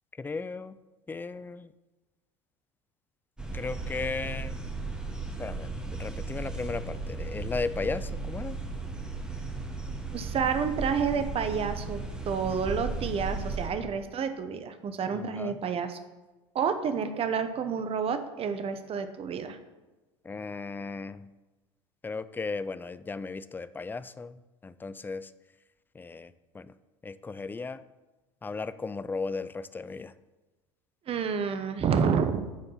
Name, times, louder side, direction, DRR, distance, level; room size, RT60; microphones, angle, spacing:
voice 1, 0.2-0.8 1.1-1.7 3.5-4.7 5.4-8.6 13.8-14.0 15.1-15.6 20.2-21.3 22.0-25.3 25.9-26.7 27.0-27.8 28.4-30.1, left 4 dB, 15° left, 14 dB, 0.4 m, -36 dB
sound 1, 3.4-13.7, right 3 dB, 5° right, 1.5 m, -36 dB
voice 2, 10.1-16.0 16.5-19.6 31.1-32.5, right 6 dB, 40° right, 9 dB, 1.0 m, -29 dB
9.6 x 4.5 x 5.6 m, 1.1 s
hypercardioid pair, 80°, 15 cm